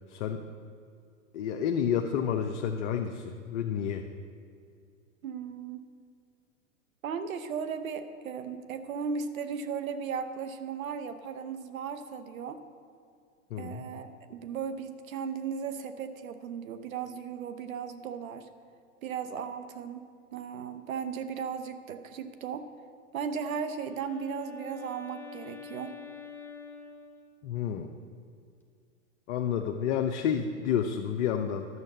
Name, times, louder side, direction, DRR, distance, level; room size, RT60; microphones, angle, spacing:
voice 1, 0.1-0.4 1.3-4.1 13.5-13.8 27.4-27.9 29.3-31.7, left 8 dB, 55° left, 4 dB, 0.8 m, -30 dB
voice 2, 5.2-5.9 7.0-12.6 13.6-18.5 19.0-22.7 23.1-26.0, right 6 dB, 75° right, 10 dB, 1.0 m, -36 dB
Wind instrument woodwind instrument, 23.2-27.7, left 5 dB, 5° left, 0.4 m, -46 dB
11.0 x 6.5 x 7.5 m, 2.3 s
hypercardioid pair, 120°, 41 cm